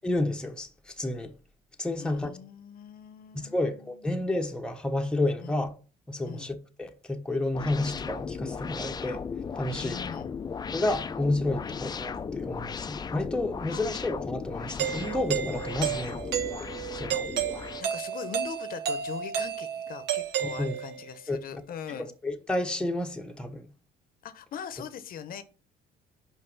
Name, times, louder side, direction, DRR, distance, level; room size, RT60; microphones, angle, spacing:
voice 1, 0.0-0.7 1.0-1.3 1.8-2.3 3.5-5.7 6.1-9.2 9.6-10.0 10.7-16.2 16.6-16.7 16.9-17.2 20.4-20.8 21.3-21.4 22.2-23.7, left 2 dB, 5° left, 1.0 m, -30 dB
voice 2, 2.0-4.0 5.4-5.6 6.2-6.5 9.8-10.4 11.6-11.8 13.7-14.0 17.8-22.1 24.2-25.4, left 8 dB, 60° left, 0.8 m, -41 dB
sound 1, 7.5-17.8, left 6 dB, 25° left, 0.5 m, -36 dB
Doorbell, 14.8-21.1, right 9 dB, 80° right, 1.1 m, -32 dB
5.5 x 5.3 x 5.3 m
cardioid pair, 110°, 17 cm